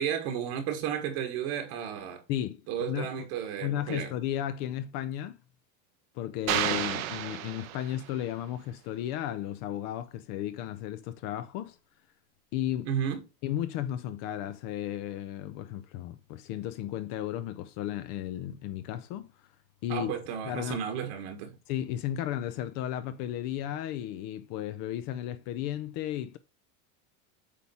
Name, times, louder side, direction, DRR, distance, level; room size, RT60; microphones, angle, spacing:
voice 1, 0.0-2.2 2.7-4.1 12.8-13.2 19.9-21.6, right 8 dB, 55° right, 1.5 m, -33 dB
voice 2, 2.3-3.1 3.6-5.4 6.1-11.8 12.5-12.9 13.4-19.3 19.8-20.1 20.4-20.8 21.7-26.4, left 12 dB, 40° left, 0.6 m, -34 dB
sound 1, 6.5-8.2, right 12 dB, 75° right, 1.2 m, -31 dB
8.4 x 3.5 x 4.2 m
supercardioid pair, 160°, 41 cm